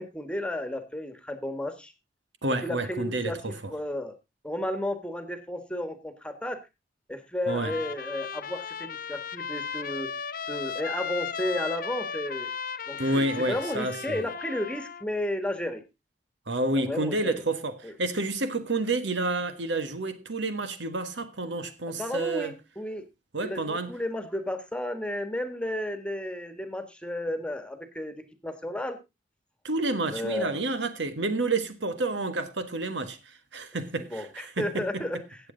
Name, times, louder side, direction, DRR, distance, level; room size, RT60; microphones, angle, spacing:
voice 1, 0.0-1.9 2.6-4.2 4.4-6.6 7.1-10.1 10.5-12.5 12.9-15.8 16.7-17.4 17.8-17.9 22.0-23.1 23.4-29.0 30.1-30.6 34.1-35.4, left 1 dB, 5° left, 1.5 m, -33 dB
voice 2, 2.4-3.7 7.5-7.7 13.0-14.3 16.5-22.5 23.3-23.9 29.6-35.0, right 2 dB, 85° right, 1.5 m, -29 dB
Trumpet, 7.5-15.0, left 6 dB, 55° left, 0.7 m, -36 dB
16.5 x 7.6 x 3.8 m
head